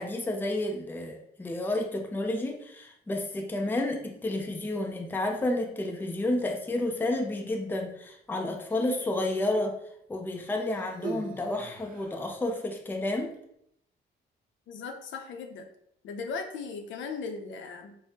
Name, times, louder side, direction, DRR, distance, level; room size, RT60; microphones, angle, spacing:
voice 1, 0.0-9.8 10.1-13.4, left 1 dB, 10° left, 3 dB, 0.4 m, -31 dB
Human voice, 8.6-9.5 10.4-12.3 13.2-13.4, right 3 dB, 45° right, 0.5 m, -42 dB
voice 2, 14.7-15.7 16.0-18.0, left 4 dB, 75° left, 5 dB, 0.5 m, -37 dB
3.3 x 2.0 x 2.7 m, 0.73 s
cardioid pair, 90°, 20 cm